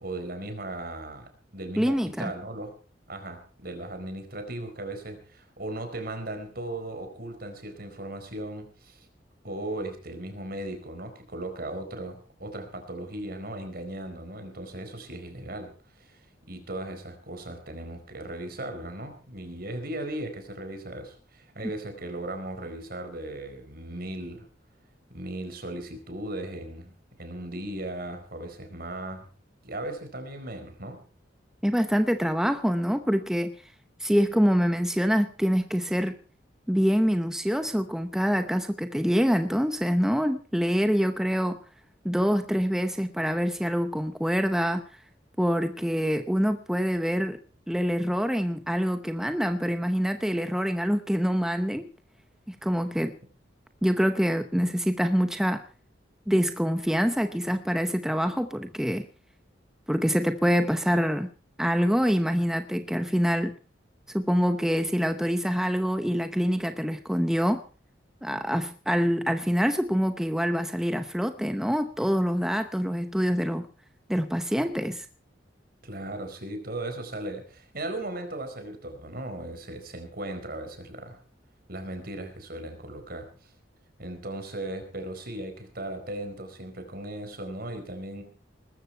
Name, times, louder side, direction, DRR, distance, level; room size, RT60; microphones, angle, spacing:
voice 1, 0.0-2.7 3.1-9.1 9.4-24.5 25.1-26.9 27.2-29.3 29.6-31.0 75.8-81.2 81.7-83.5 84.0-88.2, right 1 dB, 55° right, 7 dB, 4.5 m, -37 dB
voice 2, 1.8-2.3 31.6-33.6 34.0-36.2 36.7-41.6 42.0-45.0 45.4-47.4 47.7-51.9 52.5-53.2 53.8-55.6 56.3-59.1 59.9-61.3 61.6-63.6 64.1-67.6 68.2-73.7 74.1-75.1, equal, 5° right, 8 dB, 0.8 m, -25 dB
20.0 x 14.0 x 4.5 m, 0.36 s
head